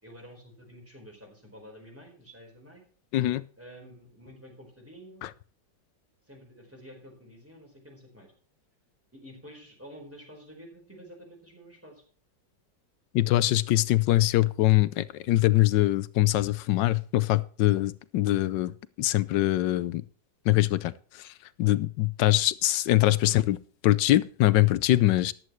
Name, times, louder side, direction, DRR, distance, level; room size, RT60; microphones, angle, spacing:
voice 1, 0.0-2.8 3.6-5.2 6.3-8.3 9.1-12.0, equal, 5° right, 4.3 m, -49 dB
voice 2, 3.1-3.4 5.2-5.3 13.1-18.7 19.0-20.0 20.5-21.3 21.6-23.6 23.8-25.3, left 15 dB, 85° left, 1.3 m, -23 dB
14.0 x 11.0 x 3.1 m
omnidirectional pair, 1.9 m